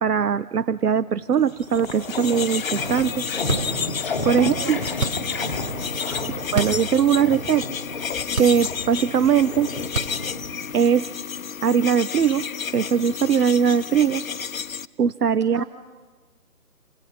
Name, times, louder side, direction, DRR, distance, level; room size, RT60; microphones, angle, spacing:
voice 1, 0.0-3.2 4.3-4.8 6.1-6.2 6.5-7.7 8.4-9.7 10.7-11.1 11.6-12.4 12.7-14.2 15.0-15.6, right 7 dB, 80° right, 16 dB, 0.7 m, -20 dB
sound 1, 1.1-1.2 1.4-10.8, left 2 dB, 5° left, 1.4 m, -32 dB
sound 2, 1.6-14.9, left 6 dB, 60° left, 0.7 m, -31 dB
sound 3, 3.5-4.1 4.9-5.5 6.4-6.9 7.3-7.4 8.3-9.0 9.8-10.5, right 4 dB, 60° right, 1.3 m, -29 dB
voice 2, 4.4-5.9 6.1-6.4 15.5-15.6, right 2 dB, 20° right, 7 dB, 1.3 m, -38 dB
28.0 x 25.5 x 5.7 m, 1.4 s
figure-of-eight pair, 155°, 46 cm